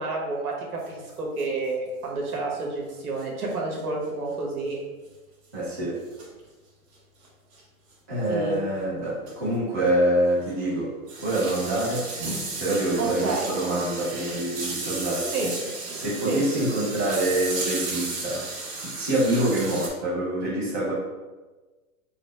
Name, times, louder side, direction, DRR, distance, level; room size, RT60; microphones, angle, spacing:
voice 1, 0.0-4.8 8.3-8.6 13.0-13.5 15.3-15.5 16.3-16.4, right 3 dB, 75° right, -1 dB, 1.4 m, -29 dB
sound 1, 0.8-0.9 1.1-1.2 1.4-1.5 3.2-3.3 3.5-3.6 4.6-4.7 6.2-6.4 7.5-7.6 8.3-8.4 8.7-8.8 9.3-9.5 9.7-9.8 10.4-19.9, right 3 dB, 45° right, 1.3 m, -34 dB
voice 2, 5.5-6.0 8.1-10.9 11.2-12.1 12.6-15.4 15.9-18.5 18.8-20.9, right 1 dB, 15° right, -10 dB, 0.3 m, -26 dB
4.0 x 2.0 x 4.3 m, 1.2 s
hypercardioid pair, 150°, 44 cm